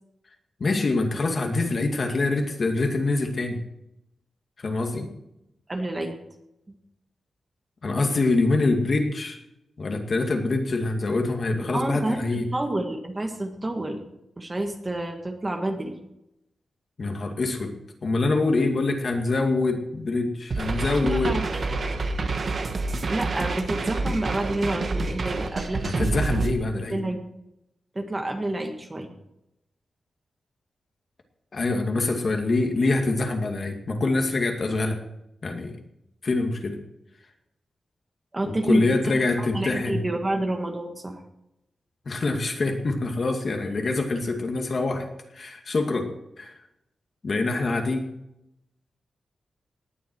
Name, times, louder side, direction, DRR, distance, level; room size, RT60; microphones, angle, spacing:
voice 1, 0.6-3.6 4.6-5.1 7.8-9.4 9.8-12.5 17.0-17.8 18.0-21.3 25.8-27.0 31.5-35.0 35.4-35.7 36.2-36.8 38.5-40.0 42.1-45.0 45.3-46.1 46.4-46.5 47.2-48.1, left 3 dB, 40° left, 3 dB, 2.2 m, -25 dB
voice 2, 5.7-6.2 11.7-14.0 14.4-16.0 21.0-21.8 23.1-25.8 26.9-27.2 28.0-29.1 38.3-41.2, right 1 dB, 20° right, 4 dB, 1.8 m, -29 dB
sound 1, 20.5-26.5, right 3 dB, 45° right, 1.5 m, -28 dB
19.0 x 11.0 x 4.7 m, 0.85 s
wide cardioid pair, 175°, 0 cm